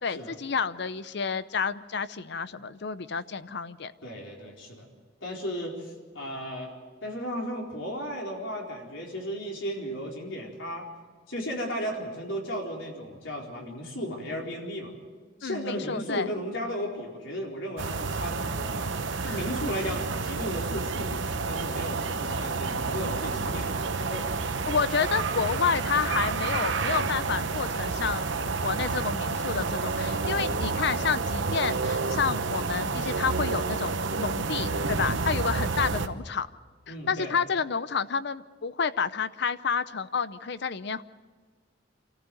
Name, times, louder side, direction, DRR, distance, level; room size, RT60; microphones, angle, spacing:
voice 1, 0.0-3.9 15.4-16.3 19.2-19.4 24.7-36.5 36.9-41.0, left 5 dB, 60° left, 14 dB, 0.7 m, -30 dB
voice 2, 4.0-4.9 5.2-6.7 7.0-10.9 11.3-14.9 15.4-18.9 19.2-24.6 36.9-37.4, equal, 80° left, 0 dB, 4.3 m, -35 dB
sound 1, 17.8-36.1, right 4 dB, 75° right, 1.0 m, -29 dB
26.5 x 14.0 x 7.9 m, 1.5 s
head